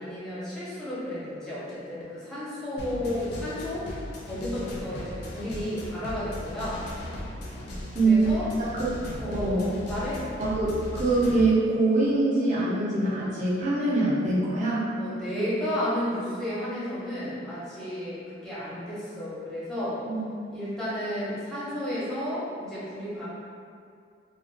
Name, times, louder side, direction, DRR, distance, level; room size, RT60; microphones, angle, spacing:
voice 1, 0.0-3.9 4.2-6.8 8.0-8.5 9.2-10.2 10.5-10.6 15.0-20.0 20.5-23.2, left 1 dB, 5° left, -10 dB, 0.6 m, -32 dB
sound 1, 2.8-11.5, left 1 dB, 60° left, 0.4 m, -37 dB
voice 2, 7.9-8.4 8.8-8.9 9.3-9.7 10.4-14.9 20.1-20.2, right 2 dB, 40° right, -9 dB, 0.6 m, -24 dB
2.4 x 2.1 x 2.6 m, 2.3 s
head